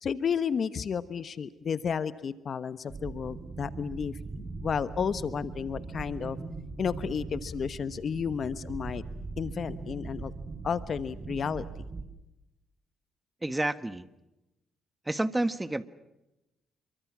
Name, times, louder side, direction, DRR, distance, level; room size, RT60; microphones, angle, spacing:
voice 1, 0.0-6.4 6.8-9.0 9.4-10.3 10.6-11.6, left 7 dB, 50° left, 14 dB, 1.1 m, -32 dB
sound 1, 2.9-12.0, right 4 dB, 35° right, 4.5 m, -40 dB
voice 2, 13.4-14.1 15.0-15.8, right 1 dB, 15° right, 14 dB, 1.4 m, -29 dB
28.0 x 23.5 x 6.1 m, 0.93 s
cardioid pair, 90°, 0 cm